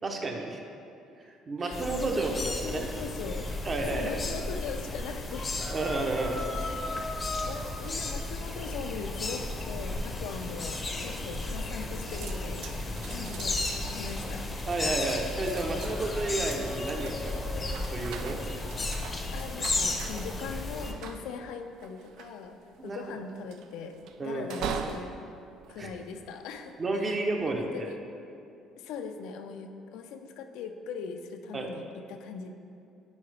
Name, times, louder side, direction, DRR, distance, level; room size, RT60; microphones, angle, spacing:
voice 1, 0.0-0.6 1.5-2.9 3.6-4.1 5.7-6.4 14.7-17.5 17.9-18.4 22.8-23.0 24.2-24.5 25.8-25.9 26.8-27.9 31.5-31.7, right 2 dB, 25° right, 2 dB, 0.6 m, -31 dB
voice 2, 1.6-3.5 3.9-5.5 6.5-14.5 19.3-22.6 22.8-25.1 25.7-27.2 27.5-28.0 28.8-32.5, left 5 dB, 80° left, 6 dB, 0.5 m, -40 dB
sound 1, 1.7-20.9, left 2 dB, 20° left, 0.6 m, -34 dB
sound 2, 12.1-26.6 27.2-27.6, right 6 dB, 70° right, 0.4 m, -43 dB
9.5 x 4.7 x 3.3 m, 2.6 s
cardioid pair, 155°, 0 cm